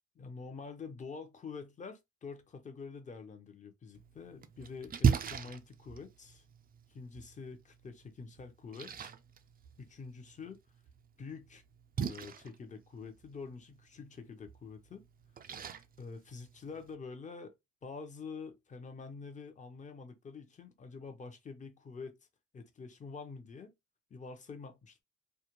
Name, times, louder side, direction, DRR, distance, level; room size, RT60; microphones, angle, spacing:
voice 1, 0.2-6.4 6.9-9.1 9.8-10.6 11.2-11.6 12.0-15.0 16.0-17.5 17.8-22.2 22.5-23.7 24.1-25.0, left 4 dB, 25° left, 0.6 m, -47 dB
Splash splatter, 3.9-16.9, right 7 dB, 30° right, 0.4 m, -39 dB
2.3 x 2.1 x 2.9 m
cardioid pair, 90°, 30 cm